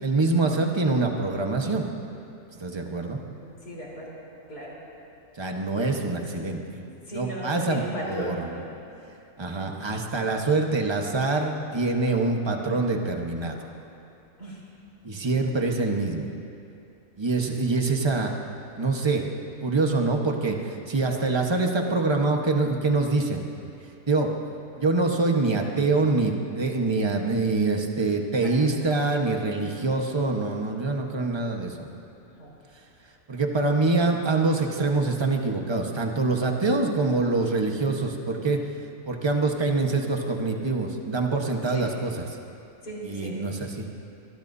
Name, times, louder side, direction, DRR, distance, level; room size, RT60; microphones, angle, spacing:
voice 1, 0.0-1.9 2.5-3.2 5.4-6.6 7.1-8.6 9.4-13.6 15.0-16.3 17.2-18.3 18.8-19.3 19.6-23.4 24.1-24.3 24.8-31.9 33.3-38.6 39.1-42.2 43.0-43.9, right 3 dB, 20° right, 2 dB, 1.1 m, -25 dB
voice 2, 3.4-4.2 4.5-4.8 6.8-8.7 13.4-13.8 14.4-14.6 28.4-28.8 29.1-29.3 32.4-32.5 41.7-41.9 42.8-43.3, equal, 90° left, -5 dB, 4.7 m, -37 dB
23.5 x 22.0 x 2.7 m, 2.7 s
omnidirectional pair, 1.6 m